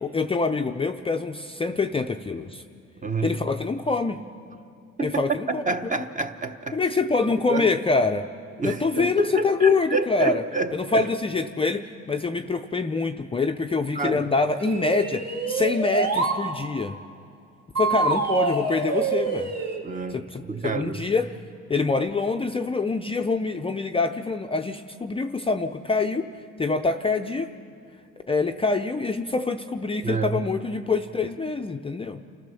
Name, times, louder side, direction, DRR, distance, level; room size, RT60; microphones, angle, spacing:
voice 1, 0.0-2.6 3.2-4.2 5.0-5.6 6.7-8.3 8.6-10.4 10.7-17.0 17.8-19.5 20.1-21.3 21.7-26.3 26.6-27.5 28.3-32.2, left 4 dB, 20° left, 5 dB, 0.5 m, -25 dB
voice 2, 3.0-3.3 5.0-5.2 5.5-6.8 7.5-7.7 8.6-11.1 13.9-14.3 19.8-21.1 30.0-30.4, right 3 dB, 25° right, 8 dB, 0.9 m, -28 dB
sound 1, 14.6-16.4 17.8-19.8, right 4 dB, 60° right, 2.4 m, -26 dB
29.0 x 14.0 x 6.9 m, 2.4 s
cardioid pair, 130°, 31 cm